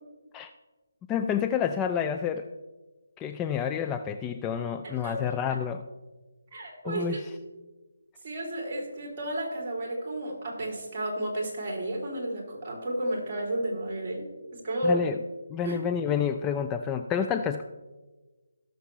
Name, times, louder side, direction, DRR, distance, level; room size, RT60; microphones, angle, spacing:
voice 1, 1.1-2.5 3.2-5.8 6.8-7.3 14.8-15.2 15.5-17.6, left 7 dB, 15° left, 6 dB, 0.3 m, -29 dB
voice 2, 4.8-5.3 6.5-7.2 8.2-14.2 14.5-15.0 15.6-15.8, right 1 dB, 35° right, 0 dB, 3.0 m, -32 dB
17.0 x 6.6 x 3.2 m, 1.2 s
figure-of-eight pair, 150°, 0 cm